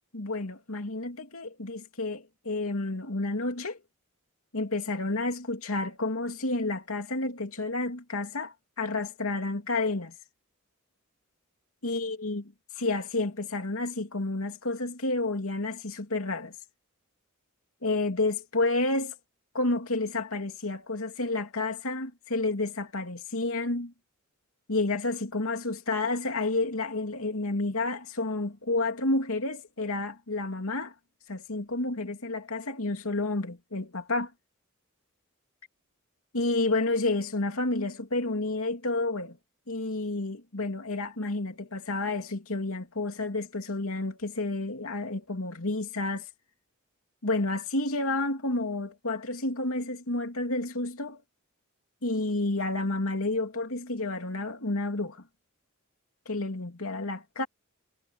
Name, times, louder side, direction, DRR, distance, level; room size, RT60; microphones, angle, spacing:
voice 1, 0.1-3.8 4.5-10.1 11.8-12.4 12.8-16.6 17.8-19.2 19.5-23.9 24.7-30.9 31.3-34.3 36.3-39.4 39.7-46.3 47.2-51.2 52.0-55.2 56.3-57.5, left 2 dB, 85° left, 2.8 m, -30 dB
head